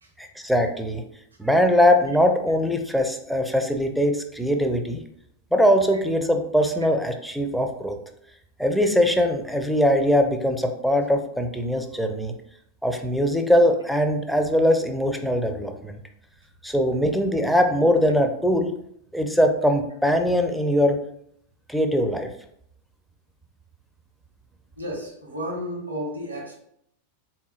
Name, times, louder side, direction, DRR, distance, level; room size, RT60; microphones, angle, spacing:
voice 1, 0.2-1.0 1.4-5.0 5.5-8.0 8.6-12.3 12.8-16.0 16.6-18.7 19.1-21.0 21.7-22.3, equal, ahead, 5 dB, 0.4 m, -21 dB
voice 2, 24.8-26.5, equal, 80° right, -1 dB, 0.9 m, -32 dB
3.6 x 3.0 x 2.3 m, 0.70 s
figure-of-eight pair, 90°, 0 cm